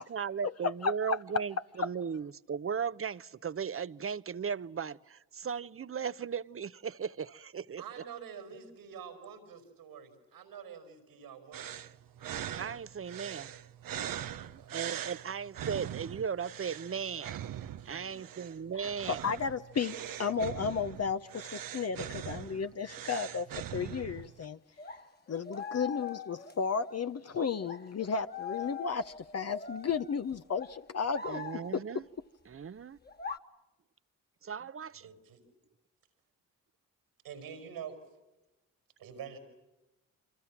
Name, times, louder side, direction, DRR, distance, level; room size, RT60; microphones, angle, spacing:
voice 1, 0.0-7.8 12.5-13.6 14.5-17.4 17.8-19.2 31.3-32.0 32.5-33.0 34.4-35.1, right 7 dB, 40° right, 0.9 m, -37 dB
voice 2, 0.8-1.2 1.8-1.9 19.1-24.6 25.3-31.8, left 6 dB, 45° left, 0.9 m, -33 dB
voice 3, 7.8-11.6 14.1-14.7 17.8-18.2 35.0-35.4 37.2-38.0 39.0-39.4, right 7 dB, 85° right, 5.2 m, -47 dB
sound 1, 11.5-24.4, right 10 dB, 70° right, 0.9 m, -42 dB
sound 2, 24.2-24.3 24.8-27.1 27.6-31.9 33.0-33.4, left 5 dB, 25° left, 1.7 m, -43 dB
29.0 x 25.5 x 7.4 m
supercardioid pair, 45°, 35 cm